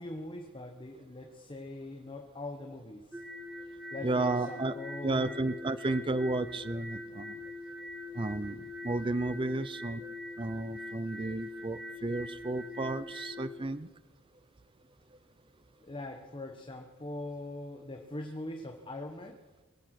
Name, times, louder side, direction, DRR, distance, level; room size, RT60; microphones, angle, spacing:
voice 1, 0.0-3.2 3.9-5.4 15.8-19.4, left 2 dB, 25° left, 3 dB, 1.1 m, -42 dB
sound 1, 3.1-13.5, left 2 dB, ahead, 1.6 m, -43 dB
voice 2, 4.0-4.7 5.0-7.4 8.1-13.9, right 2 dB, 25° right, 14 dB, 0.5 m, -33 dB
22.5 x 8.8 x 6.0 m, 1.3 s
head